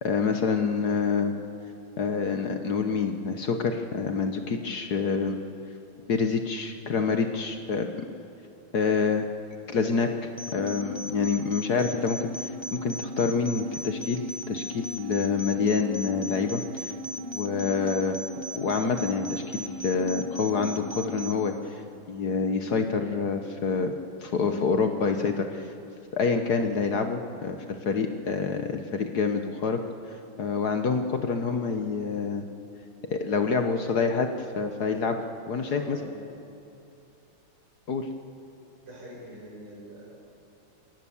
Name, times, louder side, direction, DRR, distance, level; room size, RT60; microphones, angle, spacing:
voice 1, 0.0-1.3 2.0-5.4 6.1-7.9 8.7-9.3 9.7-12.3 12.7-16.9 17.3-18.2 18.5-21.5 22.1-23.9 24.2-25.7 26.1-29.8 30.4-32.4 33.1-34.3 34.6-35.2 35.5-36.0 37.9-38.1, left 5 dB, 55° left, 6 dB, 1.4 m, -27 dB
sound 1, 10.4-21.4, left 1 dB, 15° left, 1.2 m, -36 dB
voice 2, 35.5-36.3 36.6-36.8 38.8-40.2, right 1 dB, 80° right, -4 dB, 8.2 m, -43 dB
29.5 x 17.0 x 7.2 m, 2.7 s
omnidirectional pair, 2.3 m